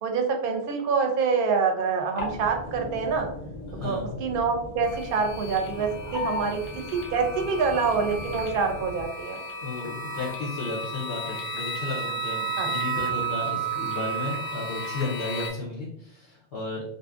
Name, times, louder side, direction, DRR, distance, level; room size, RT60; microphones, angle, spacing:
voice 1, 0.0-3.3 3.7-9.4 12.6-12.7, right 5 dB, 60° right, 3 dB, 0.6 m, -26 dB
sound 1, 2.2-9.1, left 2 dB, 50° left, 0.6 m, -37 dB
voice 2, 3.7-4.0 9.6-16.8, left 3 dB, 70° left, -5 dB, 1.0 m, -33 dB
sound 2, 4.8-15.5, right 4 dB, 85° left, 1.0 m, -33 dB
2.6 x 2.6 x 2.4 m, 0.75 s
omnidirectional pair, 1.2 m